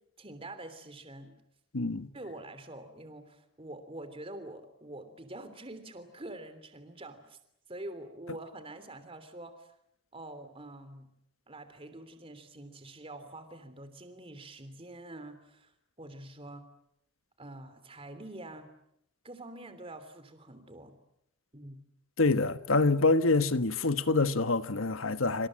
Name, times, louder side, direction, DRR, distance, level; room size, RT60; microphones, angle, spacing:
voice 1, 0.2-1.4 2.1-7.4 7.7-9.7 10.1-11.1 11.5-15.7 16.0-16.6 17.4-18.7 19.2-20.9 21.5-21.8, right 1 dB, 30° right, 3.1 m, -46 dB
voice 2, 1.7-2.1 22.2-25.5, left 3 dB, 90° left, 1.4 m, -26 dB
27.0 x 26.5 x 7.6 m
head